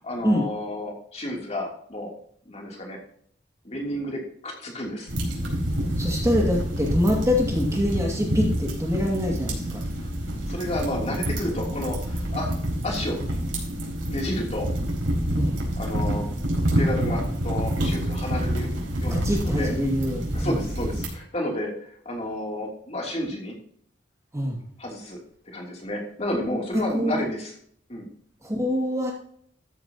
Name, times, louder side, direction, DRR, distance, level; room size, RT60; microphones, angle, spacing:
voice 1, 0.0-2.1 2.4-3.0 3.6-5.1 10.0-10.1 10.5-12.5 12.8-13.2 14.1-14.7 15.8-16.2 16.8-18.7 19.0-19.7 20.3-23.5 24.8-25.2 25.5-27.5 27.9-28.1, left 1 dB, 35° left, -1 dB, 3.0 m, -31 dB
sound 1, 5.1-21.1, equal, 85° right, 4.7 m, -27 dB
voice 2, 6.0-9.8 15.4-15.6 19.1-20.6 24.3-24.6 26.7-27.3 28.4-29.1, left 1 dB, 15° right, -1 dB, 2.3 m, -25 dB
13.5 x 9.4 x 2.9 m, 0.63 s
head